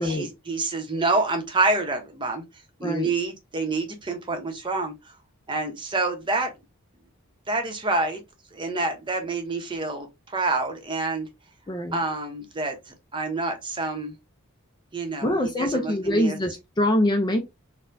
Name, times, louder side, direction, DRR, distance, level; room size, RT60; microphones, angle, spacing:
voice 1, 0.0-2.4 2.8-4.9 5.5-6.5 7.5-8.2 8.5-11.3 11.9-14.1 14.9-16.4, right 3 dB, 20° right, 0.7 m, -27 dB
voice 2, 11.7-12.0 15.2-17.4, left 1 dB, 20° left, 0.4 m, -24 dB
4.3 x 2.2 x 2.5 m
head